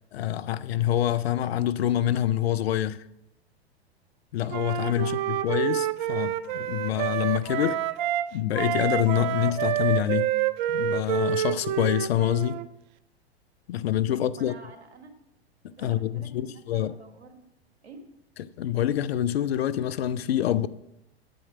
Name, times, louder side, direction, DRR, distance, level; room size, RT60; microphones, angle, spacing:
voice 1, 0.1-3.0 4.3-7.8 8.3-10.3 10.7-12.6 13.7-14.5 15.8-16.9 18.4-20.7, left 11 dB, 70° left, 0.6 m, -26 dB
Wind instrument woodwind instrument, 4.5-8.3 8.5-12.7, right 12 dB, 45° right, 0.6 m, -28 dB
voice 2, 14.1-15.1 15.7-17.4 17.8-18.0, right 3 dB, 80° right, 1.7 m, -48 dB
9.2 x 7.8 x 4.9 m
hypercardioid pair, 100°, 32 cm